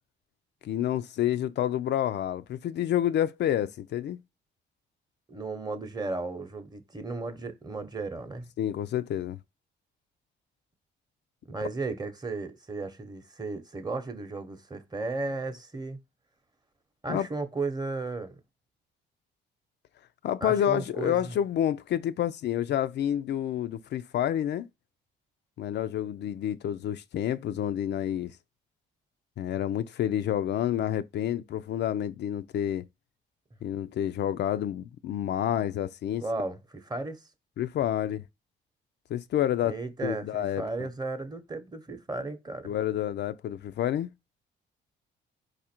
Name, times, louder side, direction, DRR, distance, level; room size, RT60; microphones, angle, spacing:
voice 1, 0.6-4.2 8.6-9.4 17.1-17.3 20.2-24.7 25.6-28.4 29.4-32.9 33.6-36.2 37.6-38.2 39.1-39.8 40.0-40.6 42.6-44.1, left 11 dB, 60° left, 0.4 m, -29 dB
voice 2, 5.3-8.5 11.4-16.0 17.0-18.4 20.4-21.3 36.2-37.2 39.6-42.7, right 3 dB, 20° right, 0.8 m, -35 dB
4.6 x 2.5 x 4.3 m
cardioid pair, 90°, 20 cm